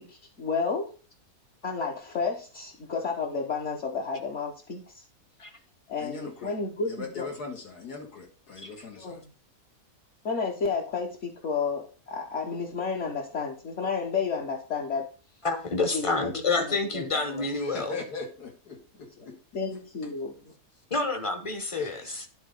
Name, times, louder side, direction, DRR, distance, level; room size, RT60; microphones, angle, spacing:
voice 1, 0.1-0.9 1.6-5.0 5.9-7.3 9.0-9.2 10.2-15.0 15.9-16.7 16.9-17.4 19.2-19.3 19.5-20.3, left 5 dB, 50° left, -2 dB, 1.4 m, -31 dB
voice 2, 5.9-6.5 6.9-9.2 17.6-19.3 20.0-20.1 21.8-22.3, left 4 dB, 85° left, 1 dB, 2.7 m, -40 dB
voice 3, 15.4-17.9 20.9-22.3, left 3 dB, 25° left, 7 dB, 0.8 m, -28 dB
10.5 x 4.0 x 5.3 m, 0.36 s
omnidirectional pair, 1.6 m